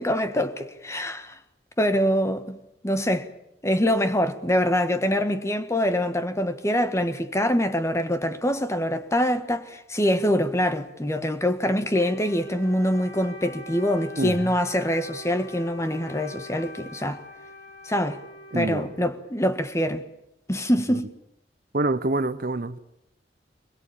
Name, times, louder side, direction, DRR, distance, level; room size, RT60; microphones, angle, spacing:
voice 1, 0.0-1.4 1.8-2.6 2.8-3.3 3.6-17.2 17.8-18.2 18.5-20.0 20.5-21.1, equal, 15° left, 1.4 m, -24 dB
Wind instrument woodwind instrument, 11.9-19.5, equal, 85° left, 3.6 m, -44 dB
voice 2, 14.2-14.5 18.5-18.9 20.9-21.0 21.7-22.8, right 2 dB, 55° right, 0.9 m, -26 dB
23.0 x 21.5 x 8.7 m
head